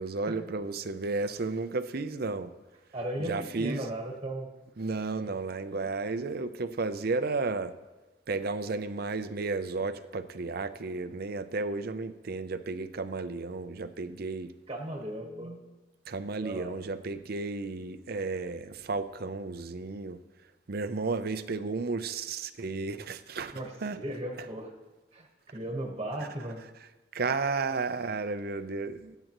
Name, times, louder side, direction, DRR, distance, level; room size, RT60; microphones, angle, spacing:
voice 1, 0.0-2.5 3.2-3.9 4.8-7.7 8.3-14.5 16.1-20.2 20.7-24.0 26.2-26.3 27.1-29.2, right 3 dB, 55° right, 12 dB, 0.6 m, -33 dB
voice 2, 2.9-4.5 5.2-5.3 14.7-15.6 16.4-16.8 23.5-24.7 25.1-26.6, right 1 dB, 30° right, 1 dB, 1.3 m, -36 dB
20.0 x 9.1 x 3.0 m, 1.1 s
head